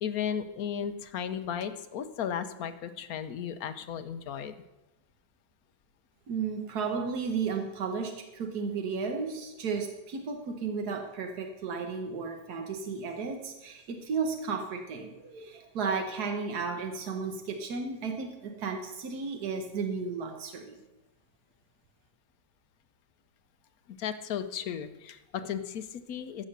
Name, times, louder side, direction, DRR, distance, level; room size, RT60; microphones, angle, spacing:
voice 1, 0.0-4.5 24.0-26.4, left 8 dB, 70° left, 11 dB, 1.2 m, -35 dB
voice 2, 6.3-20.8, right 5 dB, 80° right, 4 dB, 1.7 m, -34 dB
14.0 x 6.2 x 6.7 m, 1.0 s
omnidirectional pair, 1.6 m